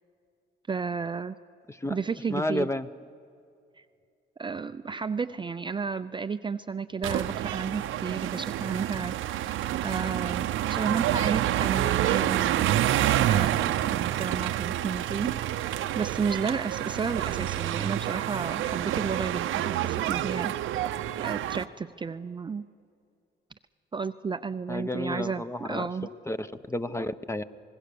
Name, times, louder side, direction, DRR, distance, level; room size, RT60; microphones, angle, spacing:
voice 1, 0.7-1.4 1.9-2.7 3.8-3.9 4.4-12.8 13.2-15.3 16.0-20.6 21.2-22.6 23.9-26.1, right 5 dB, 25° right, 10 dB, 0.5 m, -32 dB
voice 2, 2.3-2.9 24.7-27.4, left 1 dB, 15° left, 12 dB, 0.8 m, -32 dB
sound 1, 7.0-21.6, right 12 dB, 85° right, 0.7 m, -28 dB
26.0 x 20.0 x 6.9 m, 2.4 s
cardioid pair, 90°, 20 cm